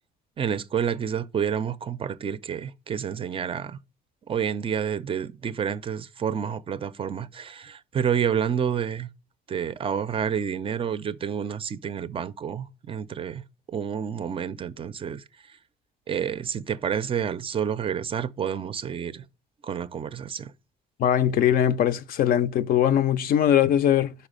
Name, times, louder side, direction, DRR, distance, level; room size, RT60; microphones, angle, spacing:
voice 1, 0.4-3.8 4.3-9.1 9.5-13.4 13.7-15.6 16.1-19.3 19.6-20.5, right 8 dB, 35° right, 0.4 m, -29 dB
voice 2, 21.0-24.1, left 10 dB, 60° left, 0.4 m, -21 dB
5.6 x 4.0 x 5.0 m
cardioid pair, 110°, 17 cm